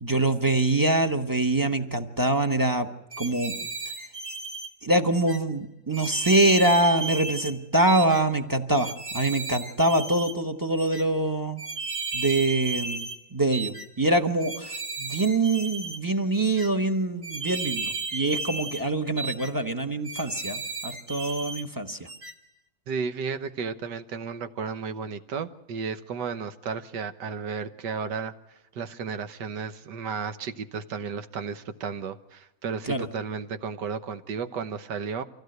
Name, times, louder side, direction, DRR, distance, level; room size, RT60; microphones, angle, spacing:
voice 1, 0.0-2.9 3.2-3.5 4.8-11.6 12.1-22.0 32.9-33.1, right 2 dB, 15° right, 8 dB, 1.0 m, -24 dB
sound 1, 3.1-4.7 5.1-5.4 5.9-7.5 7.9-8.2 8.8-10.4 10.8-11.0 11.6-13.2 13.5-13.9 14.4-16.0 16.4-16.7 17.2-18.8 19.2-19.5 20.0-21.6 22.1-22.3, right 4 dB, 60° right, 3.0 m, -34 dB
voice 2, 22.9-28.3 28.8-35.2, right 5 dB, 75° right, 10 dB, 1.7 m, -33 dB
25.0 x 16.0 x 8.0 m, 0.95 s
omnidirectional pair, 1.9 m